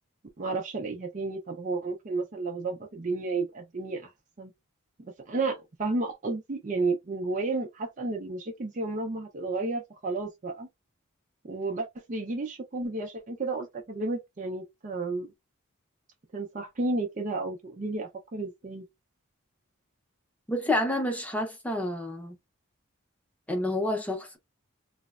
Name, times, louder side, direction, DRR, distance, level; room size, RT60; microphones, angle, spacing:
voice 1, 0.4-4.1 4.4-4.5 5.0-10.7 11.4-15.3 16.3-18.8, right 3 dB, 35° right, 0.5 m, -32 dB
voice 2, 20.5-22.4 23.5-24.4, left 1 dB, 5° left, 0.6 m, -29 dB
3.1 x 2.0 x 2.3 m
head